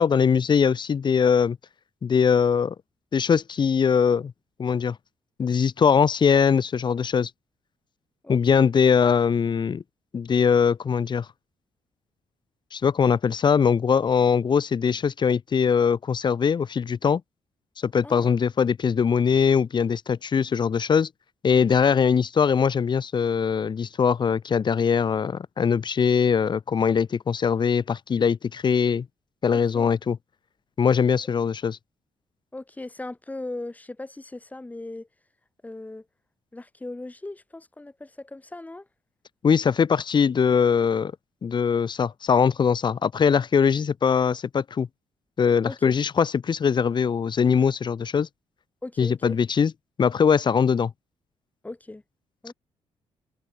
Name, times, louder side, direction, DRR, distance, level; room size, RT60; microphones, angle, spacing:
voice 1, 0.0-1.6 2.0-2.8 3.1-4.3 4.6-5.0 5.4-7.3 8.3-9.8 10.1-11.3 12.7-17.2 17.8-21.1 21.4-29.1 29.4-30.2 30.8-31.8 39.4-41.1 41.4-44.9 45.4-48.3 49.0-49.7 50.0-50.9, left 6 dB, 45° left, 1.9 m, -21 dB
voice 2, 8.2-8.7 18.0-18.3 29.5-29.9 32.5-35.1 35.6-36.1 36.5-38.9 45.6-46.0 48.8-49.4 51.6-52.0 52.4-52.5, left 2 dB, 15° left, 5.8 m, -38 dB
cardioid pair, 105°, 11 cm